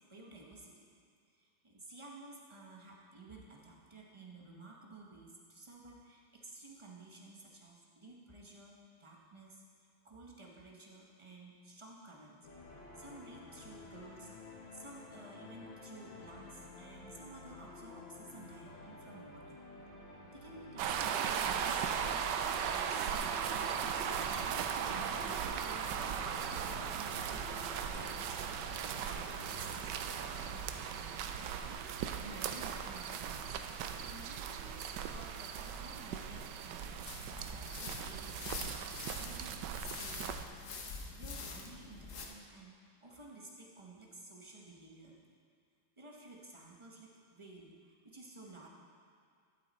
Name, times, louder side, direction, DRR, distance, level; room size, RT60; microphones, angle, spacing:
voice 1, 0.1-0.8 1.3-9.6 10.0-12.4 12.7-19.6 20.3-30.3 31.0-40.6 41.2-45.2 46.0-48.7, right 2 dB, 40° right, -2 dB, 0.4 m, -53 dB
sound 1, 12.4-30.8, left 3 dB, 70° left, 2.3 m, -51 dB
sound 2, 20.8-40.4, right 8 dB, 75° right, 1.0 m, -38 dB
sound 3, 37.1-42.3, left 4 dB, 50° left, 1.0 m, -45 dB
11.5 x 9.0 x 4.1 m, 2.2 s
omnidirectional pair, 2.3 m